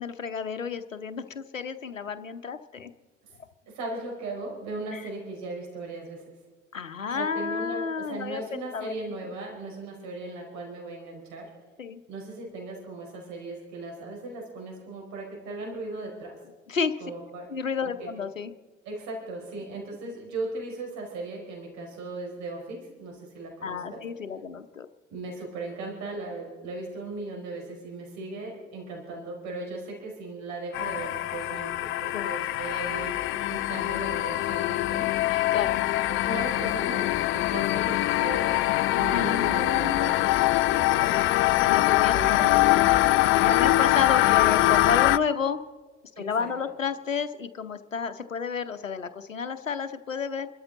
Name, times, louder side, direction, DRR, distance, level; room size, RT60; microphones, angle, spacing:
voice 1, 0.0-2.9 4.9-5.0 6.7-9.0 11.8-12.0 16.7-17.0 17.5-18.5 19.7-19.8 23.6-24.9 32.1-32.3 35.3-35.9 39.1-40.5 41.6-42.4 42.7-45.6 46.2-50.5, left 6 dB, 85° left, 9 dB, 0.9 m, -31 dB
voice 2, 3.7-6.3 7.1-11.5 12.1-16.4 17.0-17.5 17.8-18.1 18.8-24.0 25.1-33.2 33.5-35.1 36.1-38.6 38.9-41.2 42.1-42.6 43.5-43.7 46.1-46.5, right 2 dB, 45° right, 0 dB, 4.7 m, -37 dB
sound 1, 30.7-45.2, left 17 dB, 35° left, 0.5 m, -23 dB
28.0 x 13.0 x 4.0 m, 1.4 s
figure-of-eight pair, 70°, 38 cm